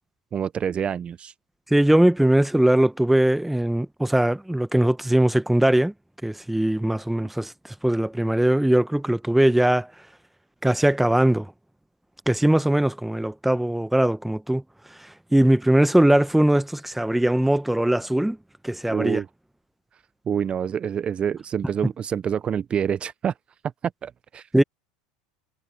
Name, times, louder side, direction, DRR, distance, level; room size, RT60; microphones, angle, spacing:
voice 1, 0.3-1.3 18.9-19.3 20.3-23.3 24.0-24.6, right 8 dB, 30° right, 0.6 m, -27 dB
voice 2, 1.7-5.9 6.2-7.5 7.8-9.9 10.6-11.5 12.3-14.6 15.0-18.4 18.6-19.2 24.5-24.6, right 1 dB, 5° right, 1.3 m, -20 dB
hypercardioid pair, 85°, 4 cm